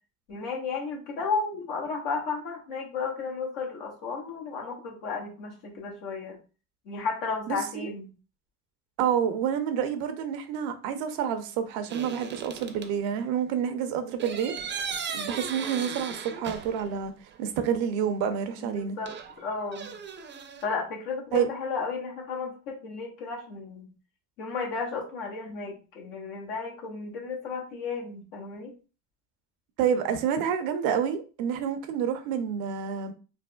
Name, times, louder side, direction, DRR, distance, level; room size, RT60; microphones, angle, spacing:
voice 1, 0.3-6.4 6.8-8.1 18.6-20.0 20.6-23.9 24.4-28.7, left 4 dB, 75° left, 1.1 m, -33 dB
voice 2, 7.5-7.9 9.0-14.5 15.1-17.1 17.4-19.0 21.3-21.5 29.8-33.1, right 8 dB, 75° right, 0.6 m, -28 dB
sound 1, 11.9-12.9 14.2-17.0 17.3-17.4 19.0-20.7, right 6 dB, 30° right, 0.5 m, -37 dB
3.3 x 2.1 x 2.2 m
supercardioid pair, 80°, 36 cm